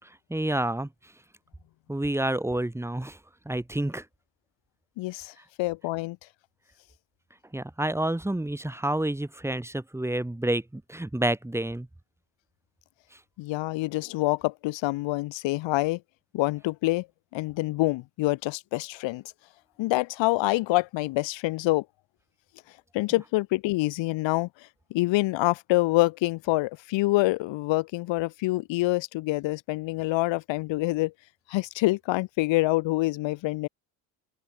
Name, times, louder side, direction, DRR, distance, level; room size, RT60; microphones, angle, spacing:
voice 1, 0.0-0.9 1.9-3.2 3.5-4.0 7.5-11.9, right 1 dB, 5° right, 6.0 m, -29 dB
voice 2, 5.0-6.2 13.4-16.0 16.3-17.1 17.3-19.2 19.8-21.8 22.9-24.5 24.9-31.1 31.5-33.7, left 19 dB, 75° left, 3.6 m, -26 dB
cardioid pair, 135°, 45 cm